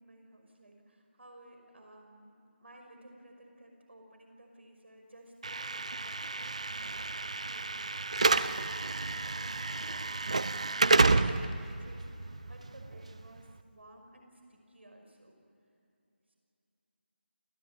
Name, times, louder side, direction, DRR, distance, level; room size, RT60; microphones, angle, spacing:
voice 1, 0.0-15.4, right 1 dB, 75° right, 3 dB, 5.7 m, -56 dB
Slam / Alarm, 5.4-13.5, right 3 dB, 35° right, 0.6 m, -30 dB
28.0 x 16.0 x 9.8 m, 2.7 s
figure-of-eight pair, 180°, 6 cm